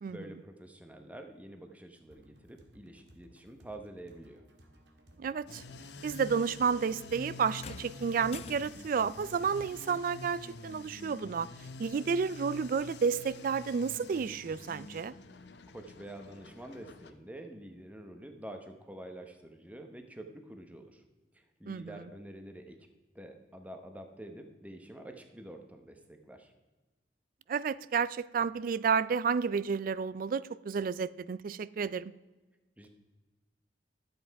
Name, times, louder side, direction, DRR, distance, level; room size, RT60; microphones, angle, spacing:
voice 1, 0.1-4.4 15.7-21.0 21.3-22.8 23.1-26.5 32.8-32.9, right 1 dB, 10° right, 0.9 m, -47 dB
sound 1, 2.1-10.1, equal, 80° right, 1.7 m, -60 dB
voice 2, 5.2-5.6 6.0-11.5 11.8-15.1 21.7-22.0 27.5-32.1, right 6 dB, 50° right, 0.3 m, -31 dB
sound 2, 5.5-17.1, left 3 dB, 75° left, 0.7 m, -48 dB
sound 3, 7.5-9.0 10.5-10.7 11.5-11.6, left 5 dB, 35° left, 0.4 m, -47 dB
12.0 x 7.9 x 4.6 m
head